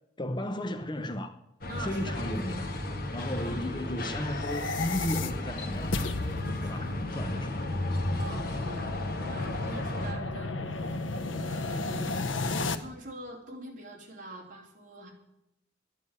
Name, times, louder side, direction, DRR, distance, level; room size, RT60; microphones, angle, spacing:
voice 1, 0.2-1.4 1.8-2.7 3.1-6.0 6.6-7.7, left 1 dB, 25° left, 0.7 m, -35 dB
sound 1, 1.6-10.1, left 1 dB, 50° left, 1.7 m, -34 dB
voice 2, 1.7-2.1 3.4-3.7 6.6-6.7 8.1-9.0 9.3-11.0 11.3-12.2 12.5-15.1, right 1 dB, 45° right, 3.3 m, -44 dB
sound 2, 4.3-12.8, left 3 dB, 85° left, 0.9 m, -34 dB
12.0 x 9.8 x 8.1 m
head